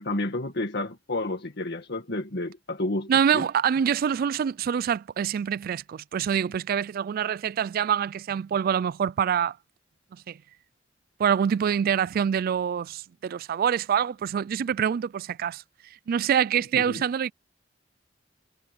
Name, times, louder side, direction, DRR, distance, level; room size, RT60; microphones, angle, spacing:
voice 1, 0.0-3.5 16.7-17.0, left 2 dB, 60° left, 1.7 m, -31 dB
voice 2, 3.1-9.6 10.1-10.4 11.2-15.6 16.1-17.3, right 8 dB, 50° right, 0.3 m, -25 dB
head